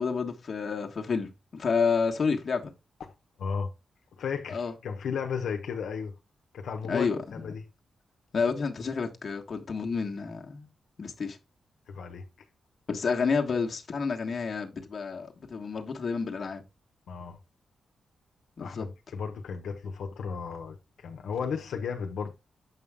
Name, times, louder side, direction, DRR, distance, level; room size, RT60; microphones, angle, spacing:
voice 1, 0.0-2.7 4.5-4.7 6.9-7.2 8.3-10.7 11.0-11.4 12.9-16.6 18.6-18.9, left 5 dB, 45° left, 1.4 m, -29 dB
voice 2, 3.4-3.7 4.2-6.1 6.5-7.1 7.4-7.6 11.9-12.3 17.1-17.4 18.6-22.3, left 6 dB, 80° left, 1.1 m, -34 dB
7.7 x 5.6 x 3.5 m
wide cardioid pair, 135°, 0 cm